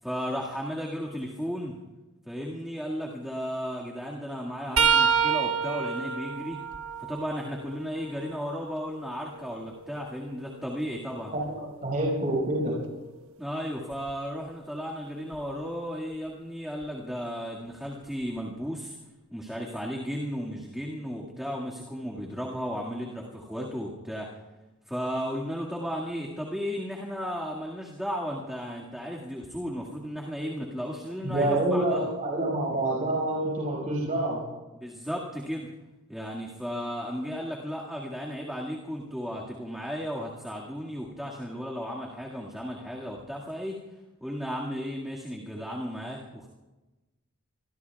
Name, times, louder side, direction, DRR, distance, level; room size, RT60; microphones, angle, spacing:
voice 1, 0.0-1.8 2.3-6.6 7.0-11.3 13.4-19.0 19.3-24.3 24.9-32.1 34.8-35.7 36.1-43.8 44.2-46.5, equal, ahead, -4 dB, 2.0 m, -34 dB
sound 1, 4.8-8.5 9.1-11.0 13.9-14.1 15.3-15.5 16.8-16.9, right 6 dB, 65° right, 1.1 m, -29 dB
voice 2, 11.3-12.8 31.2-34.4, right 1 dB, 40° right, -3 dB, 5.6 m, -27 dB
26.5 x 23.0 x 2.4 m, 1.1 s
head